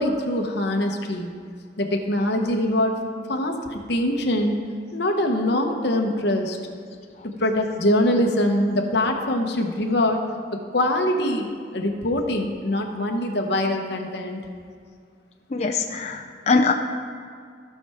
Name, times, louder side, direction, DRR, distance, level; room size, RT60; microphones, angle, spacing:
voice 1, 0.0-1.3 1.8-3.0 3.3-4.6 4.9-6.6 7.2-10.2 10.5-14.4, left 1 dB, 60° left, 3 dB, 1.0 m, -23 dB
voice 2, 15.5-16.7, left 4 dB, 35° left, 2 dB, 0.5 m, -22 dB
15.5 x 5.7 x 3.5 m, 2.2 s
head